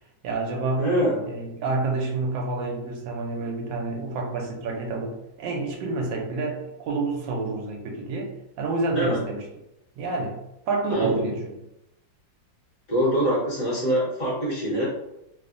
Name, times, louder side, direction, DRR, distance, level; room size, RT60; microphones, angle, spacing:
voice 1, 0.2-0.9 1.2-8.3 8.6-9.4 10.0-10.4 10.7-11.6, right 3 dB, 80° right, 1 dB, 1.3 m, -28 dB
voice 2, 0.8-1.2 8.9-9.2 10.9-11.3 12.9-14.8, right 1 dB, 55° left, -7 dB, 1.2 m, -24 dB
3.3 x 2.0 x 2.5 m, 0.88 s
omnidirectional pair, 2.1 m